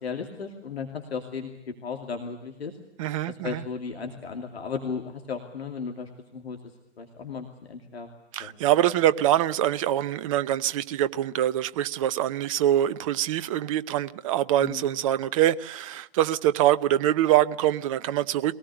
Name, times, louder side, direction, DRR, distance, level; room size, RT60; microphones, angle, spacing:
voice 1, 0.0-2.7 3.3-6.6 7.0-8.1 8.4-8.5 14.6-14.9, left 5 dB, 65° left, 2.7 m, -35 dB
voice 2, 3.0-3.6 8.3-18.6, right 12 dB, 30° right, 0.7 m, -24 dB
22.5 x 18.0 x 8.3 m
figure-of-eight pair, 115°, 34 cm